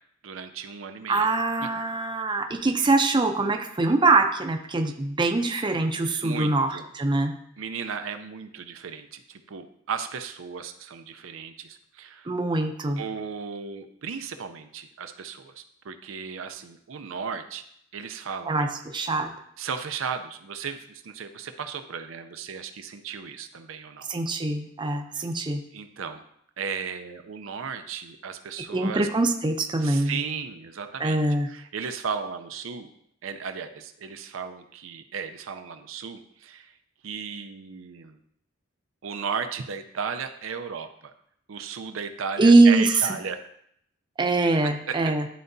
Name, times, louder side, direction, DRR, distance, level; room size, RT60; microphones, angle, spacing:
voice 1, 0.2-1.3 6.2-6.9 7.6-12.3 13.0-17.6 17.9-18.7 19.6-24.1 25.2-25.3 25.7-26.2 26.6-29.1 29.8-32.9 33.2-36.7 37.0-38.2 39.0-41.1 41.5-43.4 44.6-45.0, right 6 dB, 90° right, 8 dB, 0.5 m, -35 dB
voice 2, 1.1-7.3 12.3-13.0 18.5-19.3 24.1-25.6 28.7-30.2 31.0-31.5 42.4-42.9 44.2-45.2, right 2 dB, 25° right, 5 dB, 0.5 m, -23 dB
11.0 x 3.9 x 2.6 m, 0.70 s
head